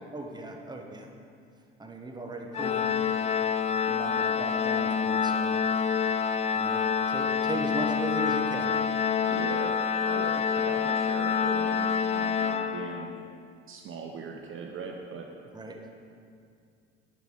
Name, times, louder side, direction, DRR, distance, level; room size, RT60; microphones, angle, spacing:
voice 1, 0.1-1.1 1.8-3.2 3.9-5.6 6.1-6.2 6.5-8.9 10.3-10.4 15.5-15.9, right 1 dB, 15° right, 2 dB, 1.3 m, -38 dB
Organ, 2.5-13.3, left 6 dB, 20° left, 0.4 m, -27 dB
voice 2, 9.3-9.8 10.0-13.1 13.7-15.3, right 5 dB, 40° right, 2 dB, 1.0 m, -40 dB
11.0 x 10.5 x 4.0 m, 2.3 s
figure-of-eight pair, 55°, 32 cm